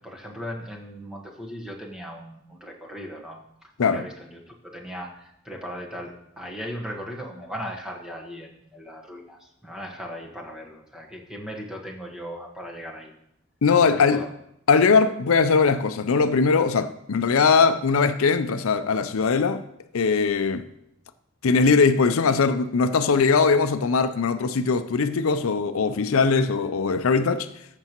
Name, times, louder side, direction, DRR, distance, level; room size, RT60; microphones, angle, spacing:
voice 1, 0.0-13.1 13.8-14.3, equal, 5° right, 1.4 m, -38 dB
voice 2, 13.6-14.2 14.7-19.7 19.9-20.6 21.4-27.5, left 5 dB, 85° left, 0.5 m, -20 dB
14.0 x 6.7 x 3.0 m
head